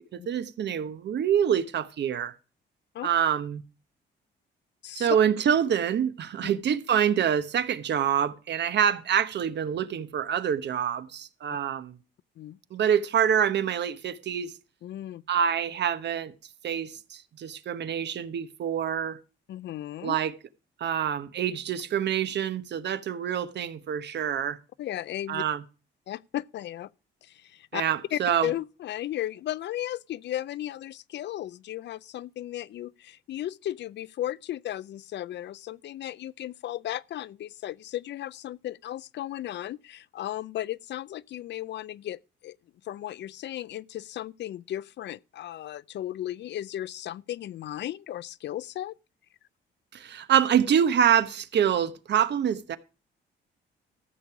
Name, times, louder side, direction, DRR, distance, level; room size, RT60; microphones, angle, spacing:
voice 1, 0.1-2.3 3.0-3.6 4.9-12.0 12.7-14.5 15.3-16.3 16.6-19.2 20.0-20.3 20.8-24.6 25.3-25.6 27.7-28.5 49.9-52.8, right 8 dB, 60° right, 1.1 m, -26 dB
voice 2, 14.8-15.2 19.5-20.2 24.8-25.4 26.1-26.9 27.2-27.8 28.1-42.6 42.8-49.0, left 13 dB, 65° left, 0.5 m, -35 dB
14.0 x 7.0 x 4.7 m
cardioid pair, 90°, 20 cm